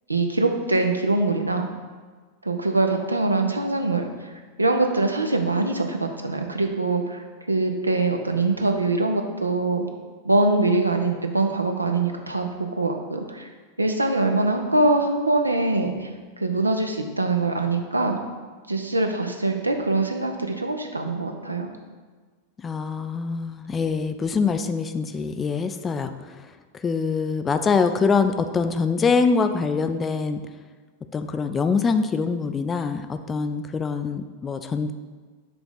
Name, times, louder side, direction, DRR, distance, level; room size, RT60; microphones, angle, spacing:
voice 1, 0.1-1.7 2.4-4.3 4.6-9.8 10.2-13.5 13.8-16.1 16.4-18.2 18.7-21.7, right 2 dB, 80° right, 4 dB, 0.6 m, -23 dB
voice 2, 22.6-30.4 31.1-34.9, left 5 dB, 20° left, 9 dB, 0.4 m, -24 dB
5.9 x 3.4 x 5.6 m, 1.4 s
figure-of-eight pair, 90°, 0 cm